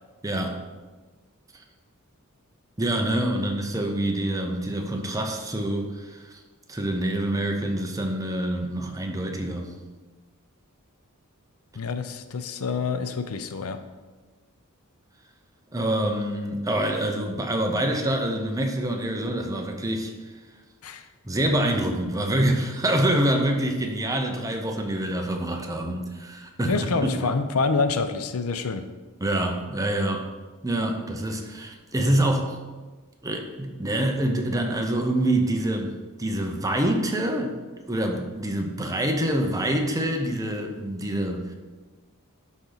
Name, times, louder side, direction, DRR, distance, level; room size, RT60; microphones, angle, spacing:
voice 1, 0.2-0.6 2.8-6.4 6.7-9.8 15.7-20.1 21.2-27.1 29.2-30.3 30.6-32.6 33.2-35.9 36.2-37.6 37.9-41.5, right 1 dB, 15° right, 3 dB, 0.8 m, -26 dB
voice 2, 11.7-13.8 20.8-21.0 26.7-28.9, left 4 dB, 75° left, 10 dB, 0.6 m, -27 dB
11.5 x 4.3 x 4.0 m, 1.3 s
head